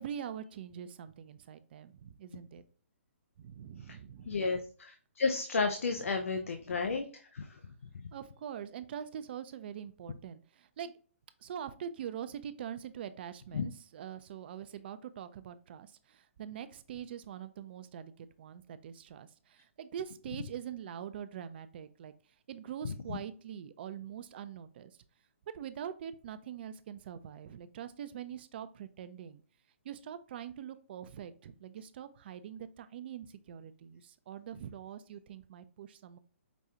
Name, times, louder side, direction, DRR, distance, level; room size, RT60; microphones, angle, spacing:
voice 1, 0.0-2.6 3.4-4.5 6.4-6.5 8.1-10.9 11.4-22.1 22.5-24.9 25.5-29.4 29.8-36.2, right 9 dB, 50° right, 12 dB, 0.4 m, -44 dB
voice 2, 4.3-7.1 7.3-7.5 13.5-13.7, left 4 dB, 85° left, 6 dB, 0.4 m, -32 dB
5.0 x 2.3 x 2.7 m, 0.42 s
hypercardioid pair, 145°, 7 cm